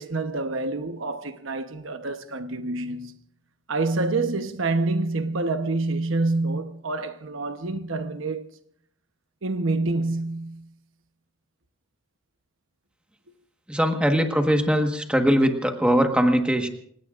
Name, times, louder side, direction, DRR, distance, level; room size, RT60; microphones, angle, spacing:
voice 1, 0.0-3.2 3.7-8.5 9.4-10.7 14.1-14.2, right 2 dB, 75° right, 1.0 m, -27 dB
voice 2, 13.7-16.7, equal, 5° right, 1.4 m, -21 dB
28.5 x 17.0 x 2.5 m
head